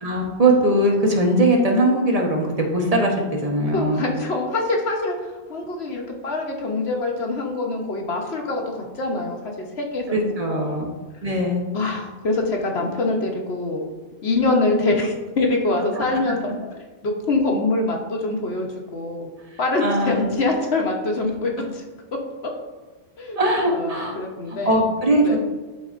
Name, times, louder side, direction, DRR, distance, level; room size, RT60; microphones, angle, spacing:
voice 1, 0.0-4.0 10.1-10.9 11.2-11.6 15.9-16.3 19.8-20.3 23.4-24.1 24.5-25.4, right 1 dB, 35° right, 0 dB, 1.1 m, -20 dB
voice 2, 3.7-5.1 5.5-10.8 11.7-13.8 14.2-16.5 17.0-19.3 19.6-21.8 23.2-23.4 23.7-24.7 25.2-25.4, left 2 dB, 65° left, 1 dB, 1.2 m, -24 dB
11.5 x 4.1 x 2.5 m, 1.3 s
omnidirectional pair, 1.2 m